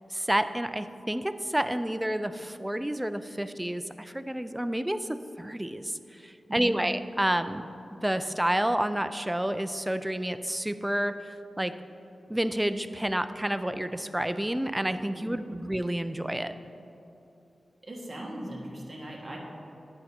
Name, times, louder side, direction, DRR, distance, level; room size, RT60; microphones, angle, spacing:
voice 1, 0.1-7.6 7.9-11.2 11.6-11.8 12.3-16.5, right 1 dB, 10° right, 11 dB, 0.3 m, -29 dB
voice 2, 6.5-6.8 15.1-15.6 17.8-19.4, right 1 dB, 25° right, -4 dB, 1.5 m, -39 dB
9.9 x 5.3 x 4.4 m, 2.9 s
wide cardioid pair, 75°, 0 cm